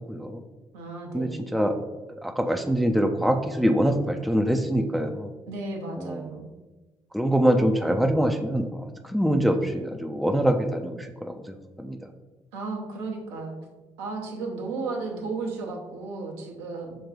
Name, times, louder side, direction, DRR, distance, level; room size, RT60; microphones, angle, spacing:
voice 1, 0.1-0.4 1.1-1.8 2.2-5.3 6.0-6.2 7.1-8.8 9.1-12.0, equal, ahead, 5 dB, 0.4 m, -24 dB
voice 2, 0.7-1.5 5.5-6.5 12.5-13.6 14.0-17.0, right 3 dB, 70° right, 0 dB, 0.8 m, -34 dB
6.0 x 2.3 x 3.7 m, 1.2 s
figure-of-eight pair, 45°, 14 cm